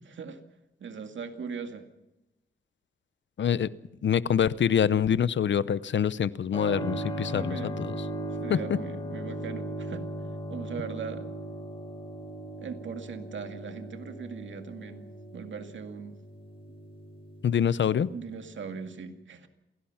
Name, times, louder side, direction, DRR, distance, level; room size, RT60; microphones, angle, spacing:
voice 1, 0.1-0.4 0.8-1.9 7.3-7.8 8.4-10.1 10.5-11.3 12.6-16.2 18.1-19.5, right 6 dB, 65° right, 6 dB, 2.2 m, -39 dB
voice 2, 3.4-3.7 4.0-7.6 8.5-8.6 17.4-18.1, left 8 dB, 65° left, 18 dB, 0.7 m, -25 dB
Keyboard (musical), 6.5-18.9, right 1 dB, 25° left, 6.2 m, -38 dB
27.5 x 17.5 x 5.9 m, 0.99 s
wide cardioid pair, 125°, 20 cm